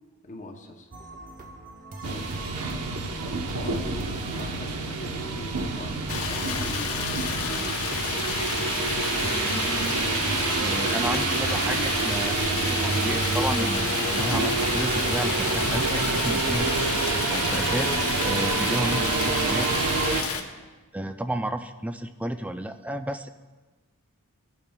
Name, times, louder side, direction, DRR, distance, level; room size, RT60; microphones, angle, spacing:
voice 1, 0.2-0.9 2.1-2.3 3.2-7.5, left 2 dB, 35° left, 2 dB, 0.7 m, -42 dB
sound 1, 0.9-16.1, right 2 dB, 40° right, 0.8 m, -41 dB
sound 2, 2.0-20.2, right 3 dB, 90° right, 0.8 m, -27 dB
Stream, 6.1-20.4, left 6 dB, 70° left, 0.9 m, -31 dB
voice 2, 10.6-16.8 17.3-17.9 18.2-19.8 20.9-23.3, right 1 dB, 5° right, 8 dB, 0.3 m, -32 dB
16.5 x 8.6 x 2.2 m, 1.3 s
head